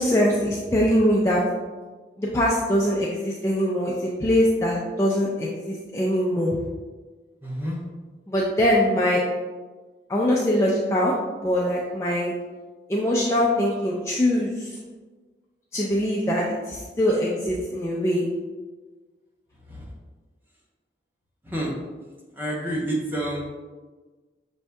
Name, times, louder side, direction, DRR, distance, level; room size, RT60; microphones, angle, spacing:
voice 1, 0.0-1.4 2.2-6.5 8.3-9.2 10.1-11.1 11.4-12.3 12.9-14.7 15.7-16.4 16.7-18.3, equal, 15° left, -5 dB, 0.3 m, -22 dB
voice 2, 7.4-7.8 19.7-19.9 21.4-21.7 22.4-23.5, right 1 dB, 10° right, -4 dB, 0.7 m, -28 dB
6.3 x 2.6 x 2.2 m, 1.3 s
head